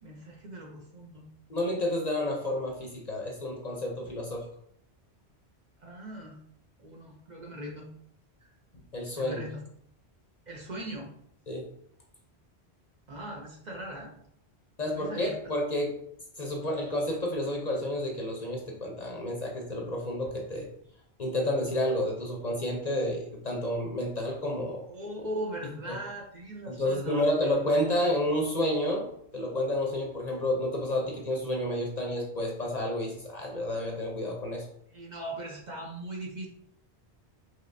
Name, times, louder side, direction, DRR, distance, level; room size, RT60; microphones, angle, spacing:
voice 1, 0.0-1.3 5.8-6.4 6.8-7.9 8.4-8.5 9.2-9.6 10.5-11.1 13.1-14.1 14.9-15.4 24.9-27.6 34.9-36.5, right 1 dB, 45° right, 0 dB, 0.8 m, -39 dB
voice 2, 1.5-4.4 8.9-9.4 11.5-11.7 14.8-15.9 16.4-20.7 21.2-24.8 25.9-26.0 26.7-29.1 29.3-34.7, left 1 dB, 45° left, 0 dB, 0.7 m, -30 dB
5.5 x 3.1 x 2.6 m, 0.71 s
omnidirectional pair, 1.1 m